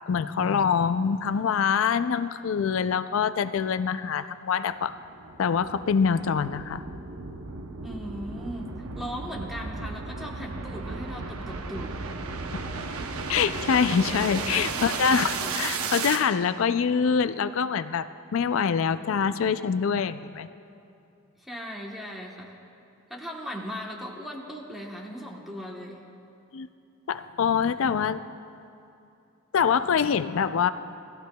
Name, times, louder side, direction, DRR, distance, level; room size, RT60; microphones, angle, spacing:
voice 1, 0.1-4.9 5.4-6.8 13.3-20.5 26.5-26.7 27.1-28.2 29.5-30.7, left 6 dB, 65° left, 13 dB, 0.4 m, -25 dB
sound 1, 4.7-16.2, right 4 dB, 80° right, 0.8 m, -34 dB
voice 2, 7.8-12.0 21.4-22.5 23.1-26.0, equal, ahead, -1 dB, 1.0 m, -38 dB
20.0 x 14.0 x 2.3 m, 2.7 s
head